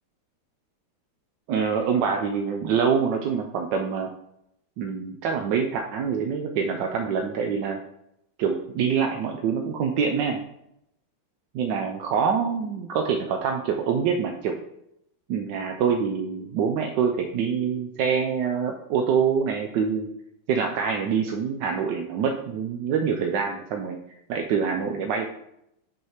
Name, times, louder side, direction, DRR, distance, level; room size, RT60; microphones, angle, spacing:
voice 1, 1.5-4.1 4.8-7.8 8.4-10.4 11.5-14.5 15.3-20.1 20.5-24.0 24.3-25.3, right 6 dB, 70° right, 3 dB, 1.2 m, -25 dB
6.1 x 4.6 x 5.7 m, 0.79 s
omnidirectional pair, 2.3 m